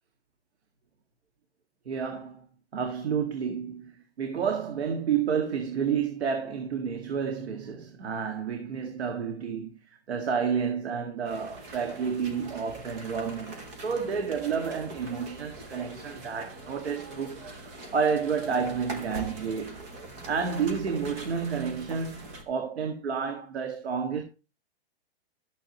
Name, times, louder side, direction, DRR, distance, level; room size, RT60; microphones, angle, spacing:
voice 1, 1.9-2.4 2.7-9.8 10.1-13.5 13.8-19.8 20.3-24.2, right 6 dB, 80° right, 2.0 m, -30 dB
sound 1, 11.2-22.4, right 2 dB, 15° right, 0.8 m, -43 dB
12.5 x 8.8 x 3.0 m
hypercardioid pair, 175°, 32 cm